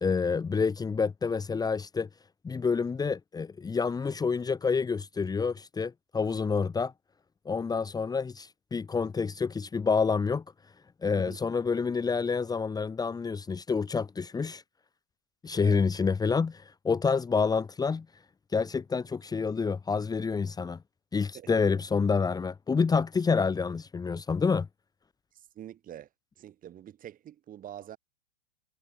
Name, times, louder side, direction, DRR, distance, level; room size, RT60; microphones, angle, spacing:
voice 1, 0.0-2.1 2.4-6.9 7.5-10.4 11.0-14.6 15.4-18.1 18.5-20.8 21.1-24.7, left 5 dB, 10° left, 2.0 m, -28 dB
voice 2, 21.3-21.7 25.3-26.1 26.4-28.0, right 11 dB, 25° right, 3.7 m, -45 dB
hypercardioid pair, 115°, 31 cm